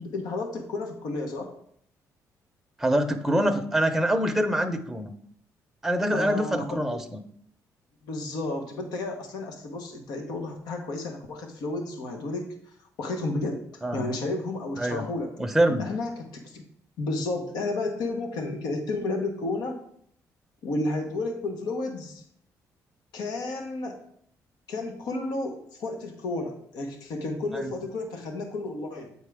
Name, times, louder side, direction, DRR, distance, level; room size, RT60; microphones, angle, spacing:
voice 1, 0.0-1.5 6.1-7.0 8.0-12.5 13.0-13.7 13.9-15.3 15.7-16.6 17.0-19.8 20.6-22.2 23.1-24.0 24.7-29.1, left 2 dB, 80° left, 4 dB, 1.2 m, -32 dB
voice 2, 2.8-5.1 5.8-7.2 13.8-14.1 14.8-15.1 15.4-15.9 27.5-27.7, right 1 dB, 5° right, 5 dB, 0.7 m, -25 dB
7.9 x 4.6 x 3.5 m, 0.66 s
cardioid pair, 90°, 7 cm